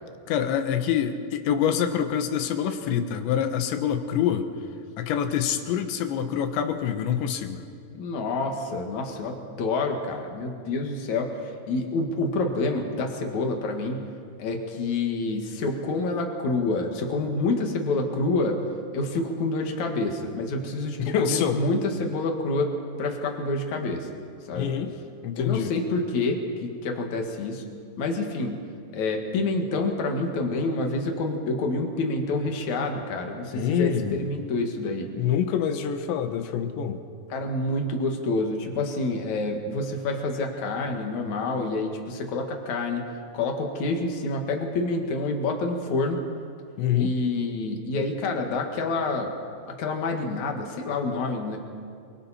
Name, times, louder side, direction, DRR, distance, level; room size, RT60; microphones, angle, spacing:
voice 1, 0.3-4.5 5.0-7.6 21.0-21.6 24.6-24.9 25.2-25.7 33.5-34.3 35.2-37.0 46.8-47.2, left 9 dB, 75° left, 7 dB, 3.1 m, -26 dB
voice 2, 7.9-14.0 14.4-18.6 18.9-24.1 24.5-24.7 25.4-27.6 28.0-28.6 28.9-35.1 37.3-43.1 43.3-46.2 47.0-49.3 49.7-51.6, left 2 dB, 55° left, 2 dB, 2.3 m, -28 dB
28.5 x 23.5 x 4.4 m, 2.3 s
omnidirectional pair, 5.8 m